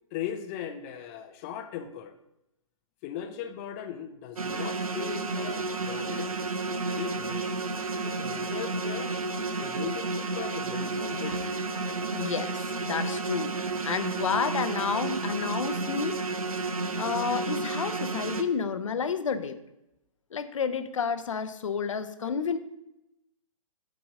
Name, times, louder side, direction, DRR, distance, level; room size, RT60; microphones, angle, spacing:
voice 1, 0.1-2.2 3.0-6.3 6.9-7.5 8.0-9.1 9.6-11.4, left 9 dB, 25° left, 7 dB, 0.5 m, -38 dB
sound 1, 4.4-18.4, right 3 dB, 80° right, 0.7 m, -31 dB
voice 2, 12.1-13.5 13.8-16.2 17.0-19.6 20.3-22.6, left 6 dB, 65° left, 11 dB, 0.6 m, -30 dB
8.3 x 3.9 x 5.0 m, 0.88 s
figure-of-eight pair, 125°, 18 cm